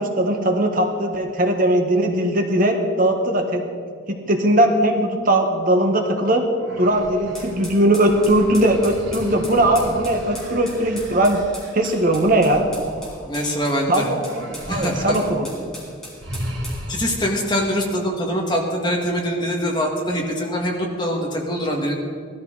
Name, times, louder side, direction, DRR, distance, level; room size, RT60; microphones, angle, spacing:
voice 1, 0.0-3.7 4.1-6.4 6.8-11.4 11.7-12.6 13.9-15.5, right 1 dB, 45° right, 3 dB, 1.2 m, -19 dB
sound 1, 6.6-13.7 14.1-15.4 15.7-15.8 16.2-17.3, equal, 60° right, 2.6 m, -36 dB
sound 2, 7.3-16.8, equal, 5° left, 3.8 m, -39 dB
voice 2, 13.3-14.1 14.7-15.3 16.9-21.9, equal, 20° left, -1 dB, 2.0 m, -23 dB
18.5 x 13.5 x 4.0 m, 2.2 s
head